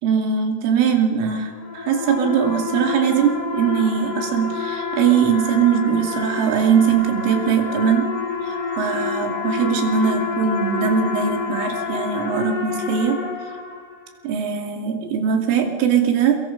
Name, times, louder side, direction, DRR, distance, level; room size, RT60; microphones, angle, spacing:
voice 1, 0.0-8.1 8.4-13.2 14.2-16.4, right 7 dB, 75° right, 4 dB, 5.0 m, -21 dB
sound 1, 1.4-14.1, left 5 dB, 30° left, 5.5 m, -28 dB
27.5 x 23.5 x 5.3 m, 1.4 s
omnidirectional pair, 5.7 m